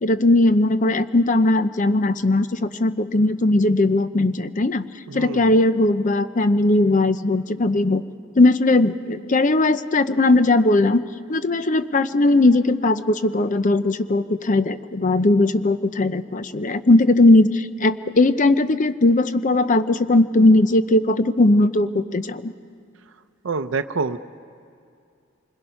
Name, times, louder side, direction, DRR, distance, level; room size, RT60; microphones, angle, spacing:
voice 1, 0.0-4.9 5.1-8.0 8.4-11.0 11.3-22.5, left 2 dB, 40° left, 12 dB, 0.7 m, -18 dB
voice 2, 5.1-5.4 23.4-24.2, right 4 dB, 70° right, 9 dB, 0.6 m, -26 dB
27.0 x 21.0 x 5.7 m, 2.4 s
head